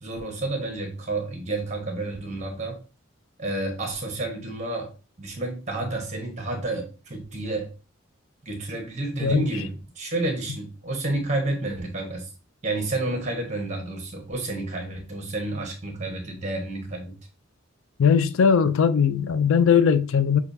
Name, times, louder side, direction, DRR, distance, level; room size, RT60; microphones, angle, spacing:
voice 1, 0.0-2.8 3.4-4.9 5.2-7.7 8.4-12.3 12.6-17.2, right 2 dB, 35° right, 1.1 m, -30 dB
voice 2, 18.0-20.4, left 6 dB, 75° left, 0.4 m, -19 dB
6.5 x 2.3 x 2.6 m
head